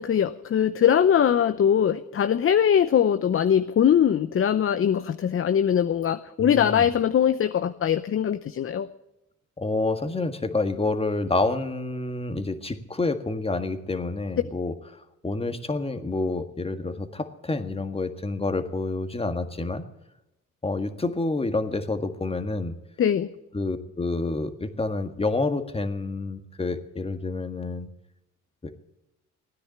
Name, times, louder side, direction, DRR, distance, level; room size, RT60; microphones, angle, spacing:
voice 1, 0.0-8.9 23.0-23.3, left 9 dB, 45° left, 10 dB, 0.8 m, -21 dB
voice 2, 6.4-6.9 9.6-19.8 20.6-22.7 23.5-27.9 28.6-28.7, left 3 dB, 20° left, 8 dB, 1.7 m, -28 dB
16.5 x 10.0 x 8.8 m, 0.88 s
cardioid pair, 90°, 30 cm